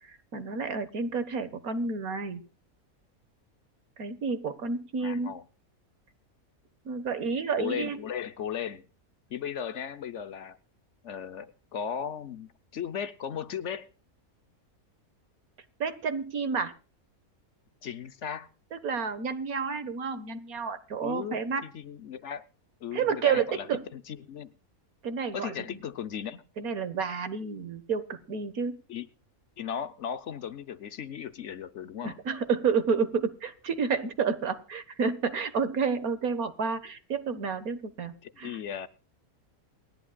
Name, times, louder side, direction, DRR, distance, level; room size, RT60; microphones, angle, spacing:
voice 1, 0.0-2.4 4.0-5.4 6.9-8.0 15.8-16.7 18.7-21.6 22.9-23.8 25.0-25.8 26.6-28.8 32.0-38.6, right 5 dB, 80° right, 1.9 m, -30 dB
voice 2, 5.0-5.4 7.6-8.8 9.3-10.6 11.0-13.9 17.8-18.5 21.0-22.5 22.8-23.7 23.9-24.5 25.3-26.4 28.9-29.1 29.6-32.2 38.2-38.9, left 8 dB, 60° left, 1.1 m, -36 dB
28.0 x 11.5 x 2.3 m
omnidirectional pair, 1.5 m